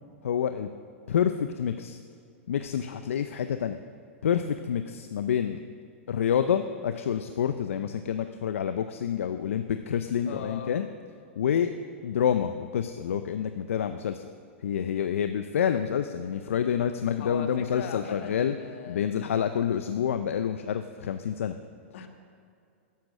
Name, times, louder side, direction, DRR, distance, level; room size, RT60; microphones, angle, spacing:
voice 1, 0.2-0.7 1.1-2.0 2.5-3.8 4.2-5.6 6.1-10.9 11.4-11.7 12.0-14.3 14.6-18.5 18.9-21.5, left 8 dB, 85° left, 9 dB, 0.5 m, -28 dB
voice 2, 10.3-10.7 17.2-19.1 21.9-22.1, left 7 dB, 65° left, 5 dB, 1.6 m, -39 dB
12.0 x 10.5 x 6.4 m, 2.4 s
hypercardioid pair, 125°, 7 cm